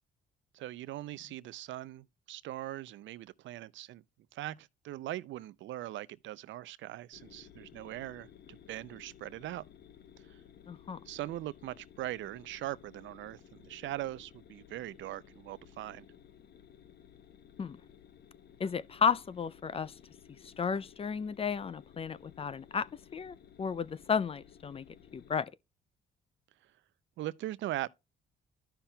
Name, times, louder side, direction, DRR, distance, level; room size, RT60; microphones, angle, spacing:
voice 1, 0.5-4.0 4.3-9.6 11.1-16.1 27.2-27.9, right 14 dB, 75° right, 0.4 m, -41 dB
sound 1, 7.1-25.4, left 9 dB, 55° left, 0.7 m, -57 dB
voice 2, 10.7-11.0 17.6-17.8 18.6-19.9 20.4-24.9 25.1-25.5, left 6 dB, 30° left, 0.4 m, -33 dB
13.5 x 5.7 x 2.2 m
cardioid pair, 90°, 20 cm